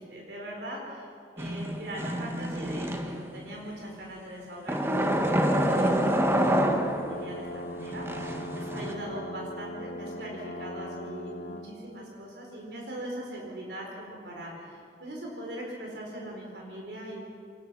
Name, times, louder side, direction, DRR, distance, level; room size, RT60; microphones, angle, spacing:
voice 1, 0.1-1.1 1.4-5.0 5.5-17.2, right 1 dB, 70° right, -1 dB, 4.3 m, -41 dB
sound 1, 1.4-3.4 4.7-7.3 7.8-8.9, equal, 15° right, 1.5 m, -27 dB
sound 2, 5.0-11.7, equal, 65° left, 1.4 m, -39 dB
24.5 x 19.5 x 6.2 m, 2.4 s
head